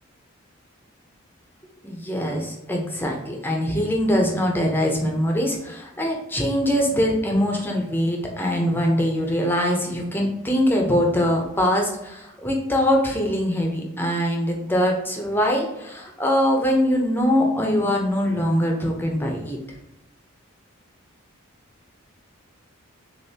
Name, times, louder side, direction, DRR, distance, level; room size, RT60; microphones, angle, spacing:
voice 1, 1.8-19.6, equal, 10° left, 0 dB, 0.7 m, -22 dB
6.4 x 2.6 x 2.8 m, 0.90 s
head